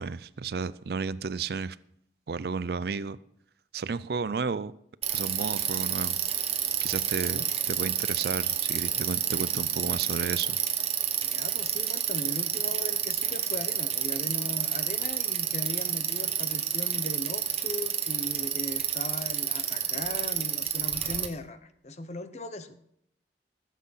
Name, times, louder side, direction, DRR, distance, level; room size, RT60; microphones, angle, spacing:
voice 1, 0.0-1.8 2.3-3.2 3.7-4.7 5.1-6.2 6.8-10.6, right 5 dB, 60° right, 17 dB, 0.4 m, -32 dB
Bicycle, 5.0-21.3, right 9 dB, 35° right, 1.0 m, -29 dB
voice 2, 11.2-22.8, left 1 dB, 40° left, 10 dB, 0.8 m, -38 dB
15.0 x 7.5 x 5.6 m, 0.71 s
head